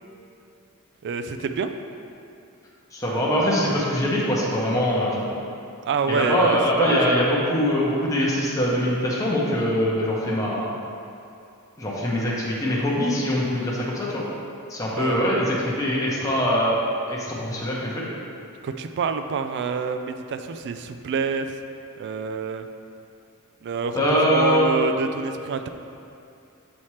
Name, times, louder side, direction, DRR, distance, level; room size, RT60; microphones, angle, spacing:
voice 1, 1.0-1.7 5.8-7.0 14.9-15.2 18.6-21.5 22.0-22.7 23.6-24.0 24.3-25.7, right 5 dB, 50° right, 8 dB, 0.3 m, -27 dB
voice 2, 2.9-5.3 6.1-10.7 11.8-14.3 14.7-16.8 17.1-18.0 23.9-24.7, equal, 15° left, -6 dB, 0.8 m, -23 dB
7.3 x 4.2 x 3.2 m, 2.6 s
head